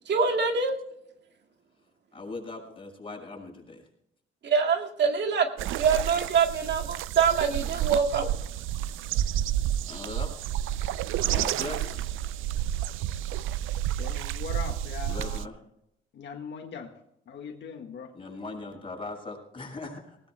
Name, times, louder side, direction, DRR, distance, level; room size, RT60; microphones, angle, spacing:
voice 1, 0.1-0.8 4.4-5.5 5.8-8.3, right 6 dB, 60° right, 2 dB, 2.0 m, -24 dB
voice 2, 2.1-3.9 7.5-7.9 9.8-10.3 10.6-10.7 11.0-12.1 15.1-15.5 18.1-20.2, left 3 dB, 25° left, 1 dB, 6.0 m, -40 dB
sound 1, 5.6-15.5, right 12 dB, 85° right, 0.5 m, -30 dB
voice 3, 14.0-15.5 16.1-16.9 17.3-18.1, left 6 dB, 65° left, 5 dB, 1.7 m, -40 dB
19.0 x 18.0 x 2.2 m, 0.76 s
cardioid pair, 90°, 20 cm